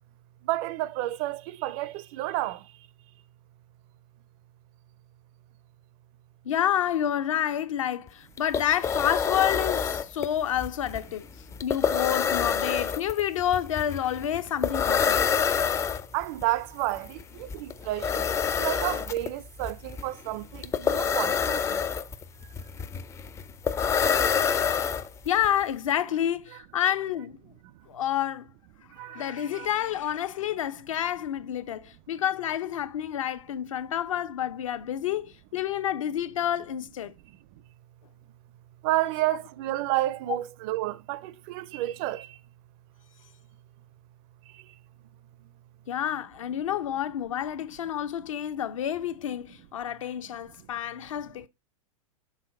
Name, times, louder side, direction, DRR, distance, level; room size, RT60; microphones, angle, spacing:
voice 1, 0.5-2.6 16.1-18.3 18.6-21.8 29.0-29.7 38.8-42.3, right 16 dB, 40° right, 0.4 m, -30 dB
voice 2, 6.5-11.2 11.6-15.3 25.3-27.4 27.9-28.5 29.1-37.1 45.9-51.5, left 10 dB, 70° left, 0.7 m, -29 dB
sound 1, 8.1-8.2 8.4-25.5, left 6 dB, 15° left, 0.4 m, -27 dB
6.2 x 3.7 x 4.4 m
figure-of-eight pair, 100°, 18 cm